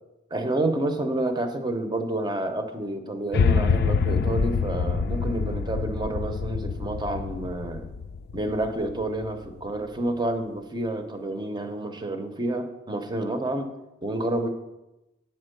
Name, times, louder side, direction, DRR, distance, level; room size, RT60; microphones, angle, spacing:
voice 1, 0.3-7.9 8.3-13.7 14.0-14.5, right 1 dB, 20° right, 7 dB, 0.7 m, -29 dB
sound 1, 3.3-9.5, left 5 dB, 50° left, 0.4 m, -26 dB
8.4 x 4.4 x 6.5 m, 0.98 s
head